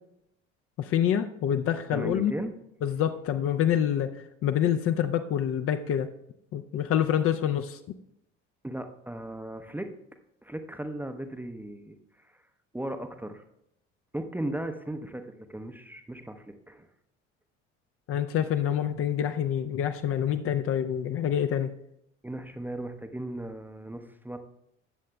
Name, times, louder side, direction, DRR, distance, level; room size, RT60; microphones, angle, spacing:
voice 1, 0.8-2.3 2.8-4.1 4.4-6.1 6.5-7.8 18.1-21.7, left 9 dB, 40° left, 8 dB, 0.5 m, -26 dB
voice 2, 1.9-2.5 8.6-9.9 10.4-12.4 12.7-13.4 14.1-16.9 22.2-24.4, right 1 dB, 5° right, 7 dB, 0.6 m, -37 dB
18.0 x 7.4 x 2.2 m, 0.79 s
figure-of-eight pair, 60°, 36 cm